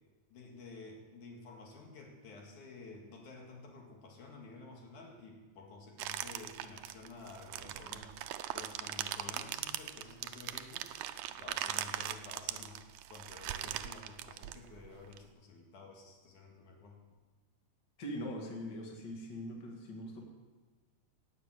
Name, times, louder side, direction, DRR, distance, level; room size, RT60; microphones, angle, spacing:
voice 1, 0.3-8.2 8.5-10.9 11.3-12.8 13.1-17.0, left 3 dB, 75° left, 0 dB, 3.4 m, -51 dB
sound 1, 6.0-15.2, right 12 dB, 75° right, 1.6 m, -40 dB
voice 2, 18.0-20.2, equal, 40° left, 1 dB, 2.4 m, -42 dB
19.0 x 6.9 x 7.8 m, 1.3 s
omnidirectional pair, 3.5 m